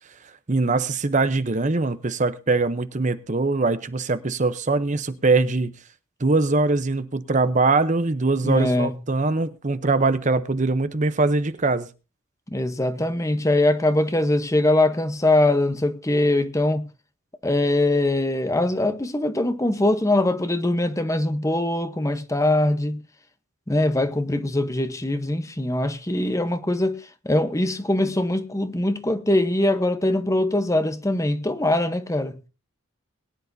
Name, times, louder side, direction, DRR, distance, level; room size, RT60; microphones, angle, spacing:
voice 1, 0.5-5.7 6.2-11.9, right 3 dB, 35° right, 0.7 m, -22 dB
voice 2, 8.4-8.9 12.5-16.9 17.4-23.0 23.7-32.4, left 1 dB, 15° left, 0.9 m, -22 dB
22.0 x 10.5 x 2.7 m
head